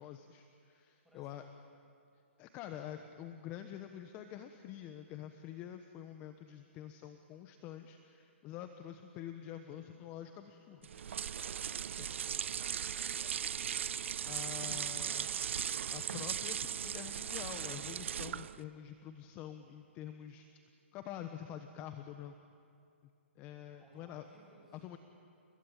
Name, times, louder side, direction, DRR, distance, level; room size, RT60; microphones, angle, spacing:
voice 1, 0.0-1.4 2.4-10.9 12.0-12.1 14.2-15.4 15.9-20.5 20.9-22.3 23.4-24.2 24.8-25.0, left 10 dB, 25° left, 8 dB, 1.1 m, -47 dB
voice 2, 1.0-1.5 2.7-3.1 9.3-10.1 12.0-12.9 23.8-24.8, right 1 dB, ahead, -3 dB, 6.8 m, -64 dB
sound 1, 10.8-18.6, right 8 dB, 70° right, 0.6 m, -38 dB
30.0 x 20.5 x 8.9 m, 2.5 s
hypercardioid pair, 150°, 7 cm